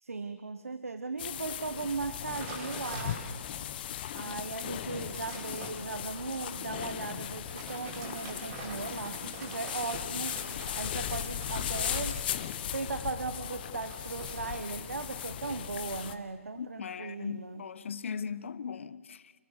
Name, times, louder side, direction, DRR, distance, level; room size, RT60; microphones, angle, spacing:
voice 1, 0.0-3.2 3.6-3.7 4.1-10.4 10.7-12.2 12.7-17.6 18.3-18.4, right 4 dB, 85° right, 1.5 m, -38 dB
sound 1, 1.2-16.2, left 10 dB, 45° left, 1.4 m, -37 dB
sound 2, 2.3-3.6 4.1-4.2 4.6-5.8 7.3-12.6 13.6-15.3 15.6-16.0, right 2 dB, 30° right, 7.8 m, -45 dB
voice 2, 16.6-19.3, left 6 dB, 60° left, 1.2 m, -38 dB
29.5 x 21.0 x 6.7 m
figure-of-eight pair, 140°, 7 cm